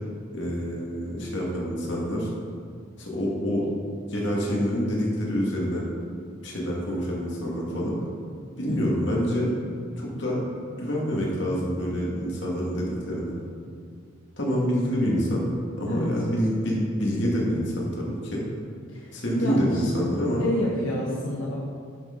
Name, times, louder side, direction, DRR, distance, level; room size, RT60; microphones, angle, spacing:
voice 1, 0.3-2.3 3.0-3.7 4.1-5.8 6.4-8.0 8.6-9.5 10.0-10.4 10.8-13.4 14.4-15.5 15.8-18.4 19.1-20.5, equal, 60° left, -4 dB, 2.1 m, -26 dB
voice 2, 8.7-9.0 15.9-16.1 18.9-19.9 20.4-21.5, left 1 dB, 80° left, -5 dB, 1.2 m, -29 dB
10.5 x 6.6 x 3.9 m, 2.3 s
head